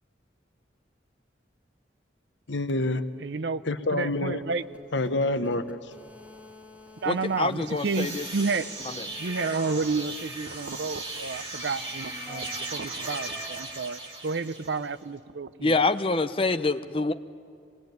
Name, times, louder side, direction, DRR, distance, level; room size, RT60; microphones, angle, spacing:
voice 1, 2.5-3.0 3.6-4.4 4.9-5.8, left 2 dB, 80° left, 10 dB, 1.0 m, -27 dB
voice 2, 3.2-3.6 3.9-4.6 7.0-8.7 9.2-15.7, right 4 dB, 70° right, 14 dB, 0.7 m, -31 dB
sound 1, 4.0-13.6, left 1 dB, 10° right, 2.8 m, -46 dB
voice 3, 7.1-8.2 15.6-17.1, left 3 dB, 30° left, 10 dB, 0.7 m, -26 dB
sound 2, 7.5-15.0, right 3 dB, 30° right, 2.7 m, -38 dB
24.5 x 20.5 x 9.3 m, 2.4 s
head